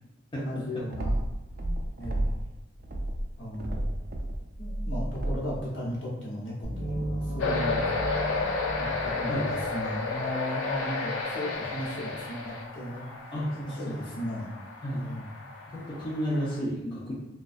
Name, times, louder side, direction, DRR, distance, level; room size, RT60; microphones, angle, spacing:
voice 1, 0.3-1.2 1.5-1.7 2.0-2.3 3.4-3.9 4.6-7.9 8.8-13.0 13.5-14.6 14.9-15.3, left 1 dB, 65° left, -5 dB, 0.9 m, -36 dB
sound 1, 0.9-2.5 2.8-5.6, right 1 dB, 45° right, 0.3 m, -31 dB
sound 2, 6.6-10.4, right 1 dB, ahead, 1.3 m, -35 dB
sound 3, 7.4-16.6, left 4 dB, 80° left, 0.5 m, -33 dB
voice 2, 15.7-17.1, equal, 25° left, -7 dB, 0.4 m, -31 dB
2.5 x 2.2 x 2.4 m, 0.98 s
head